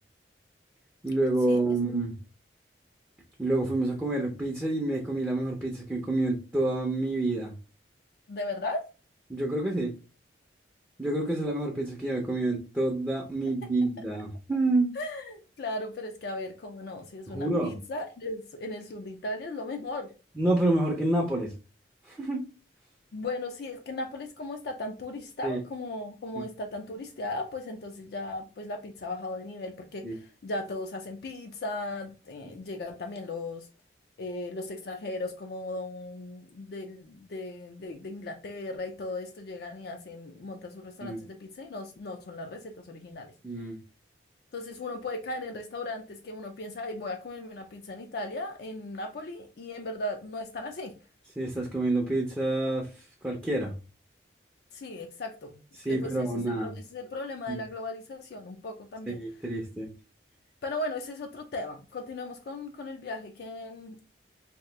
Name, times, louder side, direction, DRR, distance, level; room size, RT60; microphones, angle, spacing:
voice 1, 1.0-2.1 3.4-7.5 9.3-9.9 11.0-14.9 17.3-17.7 20.4-21.5 22.1-22.4 25.4-25.6 26.4-26.5 30.0-30.2 41.0-41.2 43.4-43.8 51.4-52.9 53.2-53.7 55.8-56.7 57.5-57.6 59.1-59.9, right 2 dB, 10° right, 0.5 m, -28 dB
voice 2, 8.3-8.9 15.0-20.1 23.1-33.7 34.2-43.3 44.5-50.9 54.7-55.6 55.9-59.2 60.6-64.0, left 2 dB, 55° left, 0.4 m, -37 dB
2.9 x 2.3 x 3.2 m
head